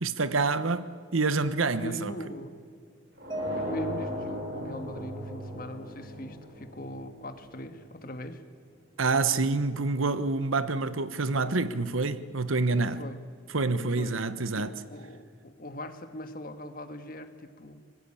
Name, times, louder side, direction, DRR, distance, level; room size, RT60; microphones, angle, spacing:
voice 1, 0.0-2.1 9.0-13.0 13.5-14.7, right 3 dB, 85° right, 1.1 m, -27 dB
voice 2, 1.8-2.6 3.5-8.4 13.0-13.2 14.0-14.2 14.5-17.8, left 1 dB, 45° left, 1.7 m, -40 dB
sound 1, 3.2-7.9, right 1 dB, 55° right, 7.9 m, -38 dB
Mallet percussion, 3.3-5.6, left 1 dB, 25° right, 1.9 m, -38 dB
24.0 x 20.0 x 8.8 m
head